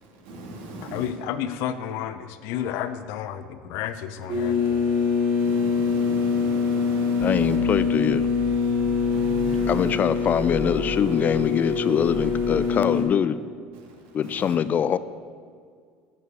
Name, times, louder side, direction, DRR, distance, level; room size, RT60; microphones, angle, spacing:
voice 1, 0.2-1.1 5.4-7.6 8.6-8.7 9.1-10.0 14.2-14.6, right 2 dB, 75° right, 0 dB, 2.3 m, -39 dB
voice 2, 0.8-4.9, left 10 dB, 70° left, 11 dB, 0.7 m, -31 dB
sound 1, 4.3-13.0, left 5 dB, 55° right, 2.7 m, -24 dB
voice 3, 7.2-8.2 9.7-13.4 14.1-15.0, left 8 dB, 35° left, 15 dB, 0.4 m, -23 dB
sound 2, 7.2-9.9 10.2-12.7, equal, 5° right, 1.5 m, -37 dB
11.0 x 5.0 x 6.9 m, 2.1 s
supercardioid pair, 100°, 5 cm